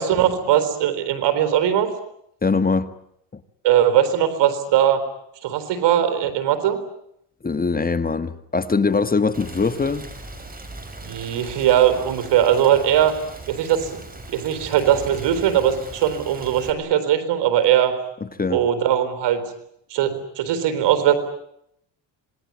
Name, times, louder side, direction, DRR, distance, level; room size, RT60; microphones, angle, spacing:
voice 1, 0.0-1.9 3.6-5.0 5.4-6.8 11.0-13.1 13.5-14.0 14.3-18.0 18.5-19.4 19.9-21.2, right 10 dB, 75° right, 11 dB, 4.2 m, -20 dB
voice 2, 2.4-2.9 3.3-3.4 7.4-10.0 18.2-18.6, left 4 dB, 20° left, 12 dB, 1.5 m, -22 dB
Rain, 9.3-16.7, right 2 dB, 20° right, 6.0 m, -39 dB
26.5 x 20.5 x 9.7 m, 0.74 s
cardioid pair, 95°, 42 cm